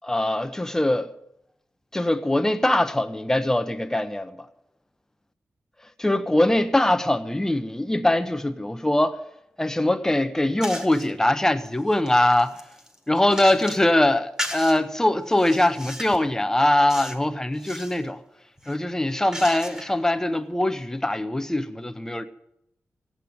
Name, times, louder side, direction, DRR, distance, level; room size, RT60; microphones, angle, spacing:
voice 1, 0.1-1.1 1.9-4.4 6.0-9.2 9.6-12.6 13.1-18.2 18.7-22.2, left 1 dB, 10° left, 0.8 m, -22 dB
sound 1, 10.6-11.1 11.7-13.9 14.4-14.8 15.3-16.3 16.9-17.2 17.5-18.0 18.6-20.0, equal, 15° right, 1.6 m, -36 dB
16.5 x 8.7 x 9.3 m
wide cardioid pair, 175°, 5 cm